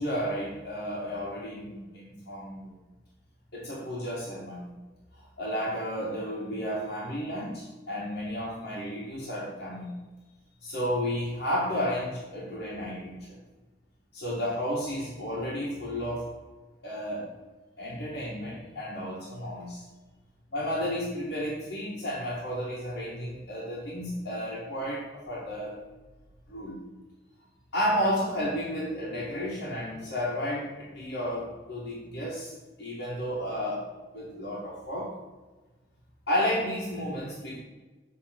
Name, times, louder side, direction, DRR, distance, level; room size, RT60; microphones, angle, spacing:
voice 1, 0.0-2.8 3.5-4.7 5.2-10.0 10.6-13.4 14.1-16.3 16.8-17.3 17.8-19.8 20.5-25.8 26.5-26.8 27.7-32.5 32.8-33.8 34.1-35.2 36.3-37.6, equal, 90° left, -7 dB, 1.8 m, -32 dB
7.4 x 3.2 x 5.9 m, 1.2 s
head